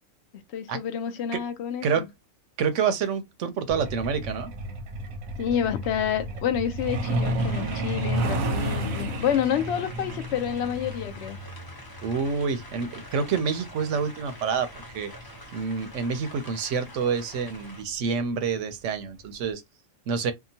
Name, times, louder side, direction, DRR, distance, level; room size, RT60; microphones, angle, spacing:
voice 1, 0.5-2.1 5.4-11.4, left 9 dB, 65° left, 0.7 m, -28 dB
voice 2, 2.6-4.5 12.0-15.1 15.5-19.6 20.1-20.3, right 6 dB, 70° right, 0.8 m, -27 dB
Truck, 3.7-16.0 17.2-17.4 17.8-18.0 18.3-18.6 18.9-19.0 19.5-19.6, right 1 dB, 90° right, 1.1 m, -32 dB
sound 1, 7.4-17.8, left 1 dB, 25° left, 0.5 m, -46 dB
2.8 x 2.2 x 2.7 m
omnidirectional pair, 1.4 m